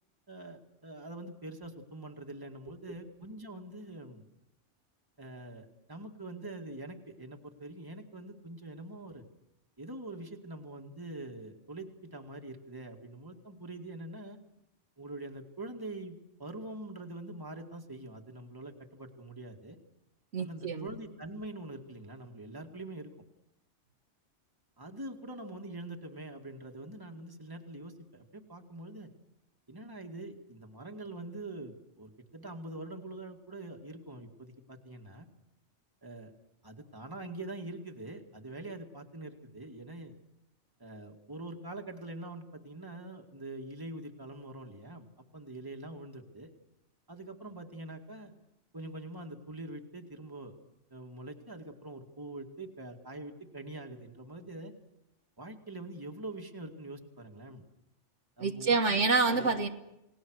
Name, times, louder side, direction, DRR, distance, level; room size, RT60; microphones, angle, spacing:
voice 1, 0.3-4.3 5.2-9.2 9.8-14.4 15.0-19.8 20.4-23.1 24.8-29.1 29.7-35.3 36.0-36.3 36.6-40.1 40.8-45.1 45.3-46.5 47.1-48.3 48.7-50.6 50.9-54.7 55.4-57.6 58.4-59.0, right 2 dB, 20° right, 3 dB, 2.2 m, -44 dB
voice 2, 20.3-20.9 58.4-59.7, right 4 dB, 80° right, 5 dB, 1.9 m, -27 dB
29.5 x 19.0 x 6.4 m, 0.86 s
omnidirectional pair, 1.2 m